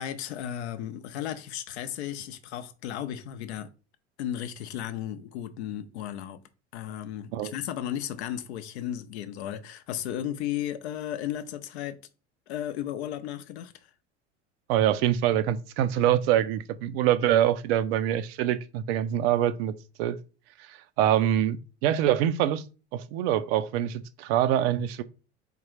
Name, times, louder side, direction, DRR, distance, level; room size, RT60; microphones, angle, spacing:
voice 1, 0.0-3.7 4.2-6.4 6.7-12.0 12.5-13.9, left 11 dB, 65° left, 0.6 m, -34 dB
voice 2, 14.7-19.7 20.0-20.2 20.6-21.6 21.8-22.6 22.9-25.0, right 11 dB, 55° right, 0.5 m, -25 dB
3.9 x 3.6 x 3.1 m
figure-of-eight pair, 70°, 35 cm